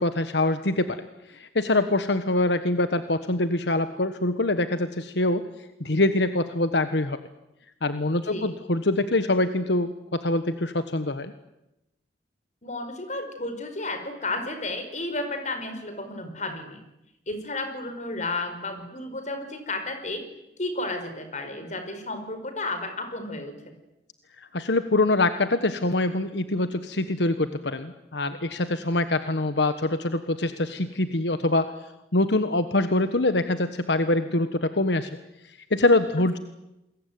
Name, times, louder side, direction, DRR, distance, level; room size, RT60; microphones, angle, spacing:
voice 1, 0.0-5.5 5.8-7.2 7.8-11.3 24.4-31.7 32.1-35.1 35.5-36.4, left 2 dB, 80° left, 10 dB, 1.4 m, -24 dB
voice 2, 12.6-16.8 17.3-20.2 20.6-23.5, left 2 dB, 45° left, 7 dB, 5.2 m, -32 dB
28.5 x 22.0 x 9.5 m, 0.91 s
head